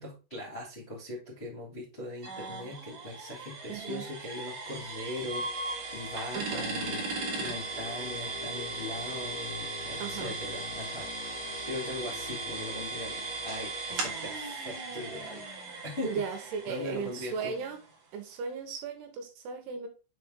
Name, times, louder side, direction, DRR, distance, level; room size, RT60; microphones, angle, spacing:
voice 1, 0.0-15.4 15.8-16.1 16.7-17.5, left 1 dB, 25° left, -6 dB, 1.3 m, -40 dB
sound 1, 2.2-17.9, right 3 dB, 55° right, 2.4 m, -37 dB
voice 2, 3.7-4.1 6.3-6.7 10.0-10.3 16.0-17.8 18.1-19.9, right 6 dB, 75° right, 5 dB, 3.0 m, -36 dB
sound 2, 6.8-13.6, left 9 dB, 80° left, 2.6 m, -47 dB
6.8 x 4.2 x 3.7 m, 0.32 s
omnidirectional pair, 5.1 m